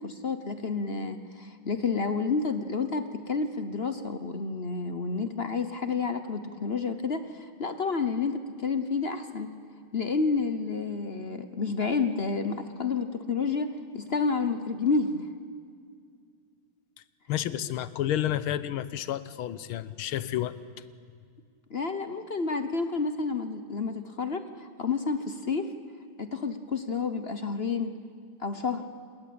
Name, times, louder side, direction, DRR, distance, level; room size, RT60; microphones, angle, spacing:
voice 1, 0.0-9.5 9.9-15.3 21.7-25.7 26.2-28.0 28.4-28.9, left 4 dB, 40° left, 9 dB, 0.9 m, -30 dB
voice 2, 17.3-20.6, left 12 dB, 85° left, 15 dB, 1.8 m, -30 dB
27.5 x 21.0 x 8.7 m, 2.2 s
omnidirectional pair, 2.3 m